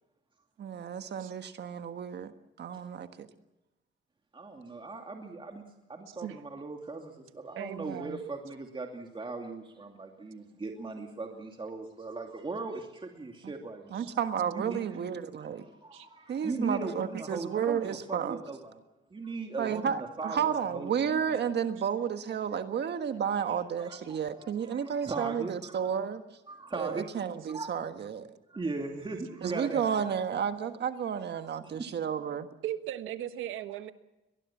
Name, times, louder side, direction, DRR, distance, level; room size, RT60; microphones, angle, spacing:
voice 1, 0.6-2.3 2.6-3.1 13.4-13.5 13.9-15.6 16.3-18.4 19.6-26.2 26.7-28.3 29.4-32.5, right 8 dB, 60° right, 8 dB, 1.5 m, -32 dB
voice 2, 4.3-5.6 5.9-14.0 14.5-14.9 15.3-18.8 19.1-21.4 23.4-26.0 26.5-27.1 27.5-27.7 28.5-30.1 30.9-31.0 31.6-31.9, right 3 dB, 25° right, 2 dB, 2.6 m, -39 dB
voice 3, 7.6-8.2 13.9-14.1 15.9-16.1 32.6-33.9, right 12 dB, 90° right, 10 dB, 1.3 m, -38 dB
22.5 x 20.0 x 7.3 m, 0.97 s
cardioid pair, 90°, 20 cm